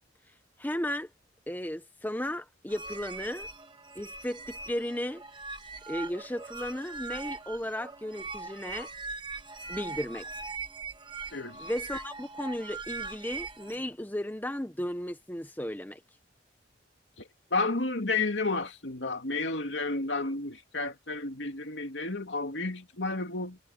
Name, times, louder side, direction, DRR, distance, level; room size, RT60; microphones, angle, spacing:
voice 1, 0.6-1.1 1.5-3.5 3.9-5.2 5.9-8.9 9.7-10.3 11.6-16.0, left 1 dB, 10° left, 1.1 m, -35 dB
sound 1, 2.7-13.8, right 4 dB, 25° right, 1.6 m, -41 dB
voice 2, 11.3-11.7 17.2-23.6, left 3 dB, 75° left, 2.7 m, -32 dB
head